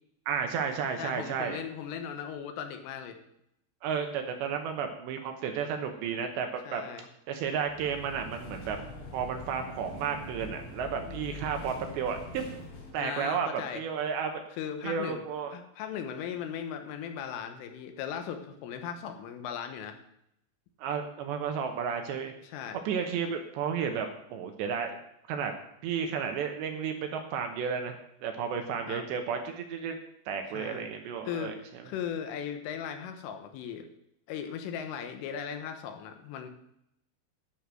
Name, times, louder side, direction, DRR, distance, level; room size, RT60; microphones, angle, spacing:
voice 1, 0.3-1.6 3.8-6.8 7.3-8.8 9.1-12.5 12.9-14.4 14.8-15.5 20.8-22.3 22.9-25.0 25.3-25.5 25.8-28.0 28.2-30.0 30.3-31.8, right 6 dB, 75° right, 5 dB, 2.8 m, -32 dB
voice 2, 1.0-3.2 6.7-7.1 13.0-13.8 14.6-15.2 15.5-20.0 22.4-22.9 28.9-29.1 30.5-30.9 31.3-31.5 31.9-33.9 34.3-36.5, left 8 dB, 80° left, 7 dB, 3.6 m, -37 dB
sound 1, 7.6-12.9, left 2 dB, 65° left, 5.1 m, -43 dB
11.5 x 6.6 x 7.6 m, 0.77 s
omnidirectional pair, 5.8 m